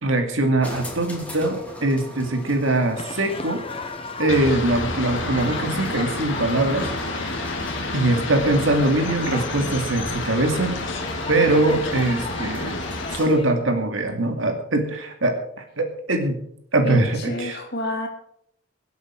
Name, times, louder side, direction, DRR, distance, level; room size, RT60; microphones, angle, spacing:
voice 1, 0.0-3.6 4.2-7.3 7.9-10.7 11.3-12.8 13.1-15.4 15.8-16.4 16.7-17.6, right 2 dB, 85° right, 5 dB, 2.4 m, -22 dB
sound 1, 0.6-13.5, equal, 5° left, 2.8 m, -41 dB
Patio del recreo en instituto de Huesca, 3.0-13.5, left 3 dB, 30° left, 1.0 m, -37 dB
sound 2, 4.3-13.2, left 2 dB, 75° left, 2.4 m, -30 dB
voice 2, 16.8-18.1, left 1 dB, 55° left, 2 dB, 2.9 m, -29 dB
23.5 x 8.3 x 4.6 m, 0.71 s
head